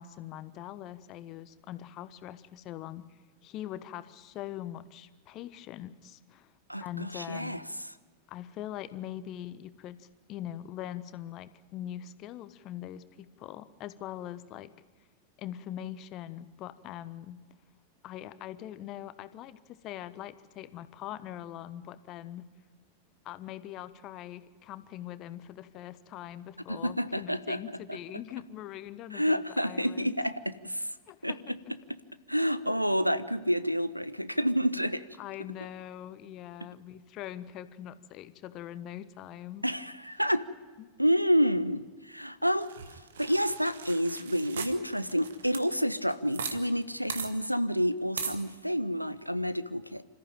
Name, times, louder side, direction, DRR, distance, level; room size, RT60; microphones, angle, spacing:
voice 1, 0.0-6.5 6.8-7.6 8.3-14.7 15.4-17.4 18.0-22.5 23.2-30.2 31.1-31.7 35.2-39.7 40.8-40.9, left 12 dB, 35° left, 14 dB, 1.1 m, -42 dB
voice 2, 6.7-7.6 26.7-27.6 27.9-28.0 29.1-30.9 31.2-31.6 32.3-35.0 39.6-40.5 41.0-42.7 43.2-50.0, equal, 90° right, 15 dB, 0.9 m, -29 dB
sound 1, 42.6-46.6 46.8-46.9 47.1-47.3 48.2-48.4, right 6 dB, 65° right, 1.8 m, -39 dB
27.0 x 14.0 x 9.0 m, 1.4 s
figure-of-eight pair, 90°, 0 cm